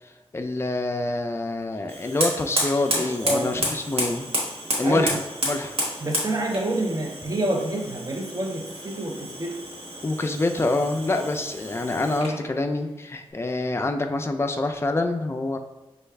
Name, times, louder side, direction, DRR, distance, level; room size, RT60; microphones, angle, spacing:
voice 1, 0.3-4.3 4.8-5.8 10.0-15.6, left 2 dB, 25° left, 5 dB, 0.4 m, -26 dB
Fire, 1.9-12.4, right 1 dB, 90° right, 1.0 m, -31 dB
voice 2, 4.8-5.2 6.0-9.6 11.1-11.3, right 1 dB, 40° right, 2 dB, 0.5 m, -27 dB
5.5 x 2.3 x 3.3 m, 1.0 s
wide cardioid pair, 115°, 10 cm